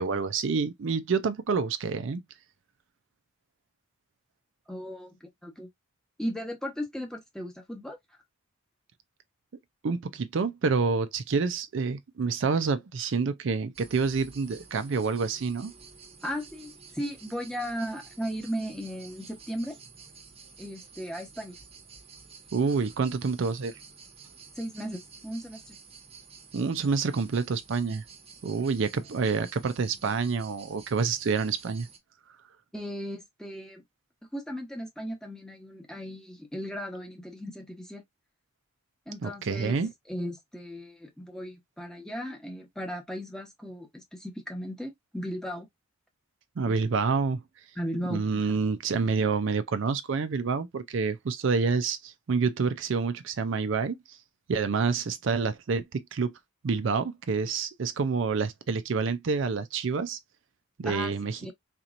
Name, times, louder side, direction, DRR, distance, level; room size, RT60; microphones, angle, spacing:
voice 1, 0.0-2.2 9.8-15.7 22.5-23.8 26.5-28.0 28.4-31.9 39.2-39.9 46.6-47.4 48.1-54.2 54.5-56.3 56.6-60.2 60.8-61.5, right 5 dB, 60° right, 0.4 m, -28 dB
voice 2, 4.7-5.7 6.2-8.0 16.2-19.8 20.6-21.6 24.5-25.8 32.7-33.8 34.3-38.0 39.1-39.8 40.1-45.7 46.6-46.8 47.8-48.6 60.8-61.1 61.4-61.5, equal, 5° left, 0.9 m, -36 dB
sound 1, 13.7-32.0, right 5 dB, 30° right, 0.8 m, -51 dB
4.0 x 2.9 x 2.4 m
head